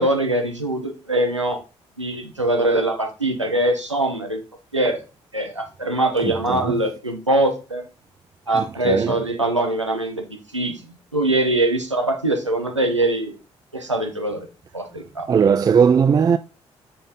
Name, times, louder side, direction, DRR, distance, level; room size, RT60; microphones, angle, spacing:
voice 1, 0.0-1.6 2.0-4.4 4.7-5.0 5.3-7.9 8.5-10.2 10.5-10.8 11.1-13.3 13.7-14.5 14.7-15.3, right 1 dB, 90° right, 0.8 m, -22 dB
voice 2, 6.2-6.8 8.5-9.1 15.3-16.4, right 6 dB, 25° right, 0.3 m, -18 dB
7.0 x 5.3 x 3.7 m
figure-of-eight pair, 45°, 15 cm